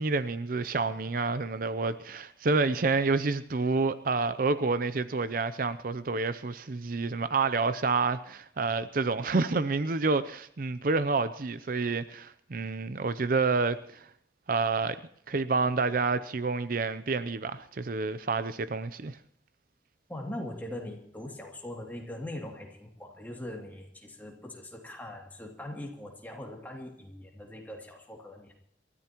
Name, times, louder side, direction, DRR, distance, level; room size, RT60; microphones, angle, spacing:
voice 1, 0.0-14.1 14.5-15.0 15.3-19.2, right 4 dB, 50° right, 0.6 m, -28 dB
voice 2, 20.1-28.5, left 1 dB, 10° left, 2.7 m, -41 dB
28.0 x 14.0 x 3.0 m
head